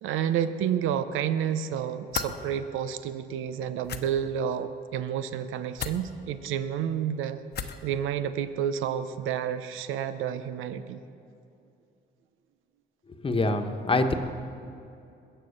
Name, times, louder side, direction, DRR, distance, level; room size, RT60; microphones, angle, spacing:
voice 1, 0.0-11.0, right 9 dB, 90° right, 11 dB, 0.7 m, -30 dB
sound 1, 2.1-2.3 3.8-4.0 5.8-6.0 7.5-7.8, left 7 dB, 55° left, 1.0 m, -33 dB
voice 2, 13.2-14.1, left 2 dB, 25° left, 6 dB, 1.2 m, -24 dB
21.5 x 7.9 x 6.7 m, 2.6 s
cardioid pair, 90°, 20 cm